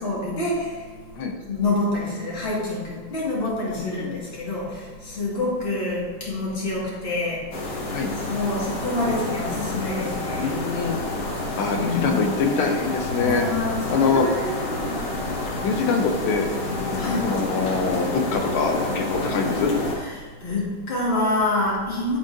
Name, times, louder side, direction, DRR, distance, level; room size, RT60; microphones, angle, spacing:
voice 1, 0.0-8.0 8.2-10.6 11.4-12.3 13.2-15.6 16.9-17.4 19.9-22.2, left 2 dB, 30° left, -5 dB, 1.7 m, -27 dB
voice 2, 3.8-4.2 7.9-8.1 10.4-11.0 11.6-13.5 13.9-14.3 15.5-16.5 17.2-19.7, left 4 dB, 85° left, 3 dB, 1.5 m, -24 dB
sound 1, 7.5-20.0, left 2 dB, 60° left, 1.6 m, -29 dB
11.0 x 3.8 x 2.5 m, 1.4 s
omnidirectional pair, 2.3 m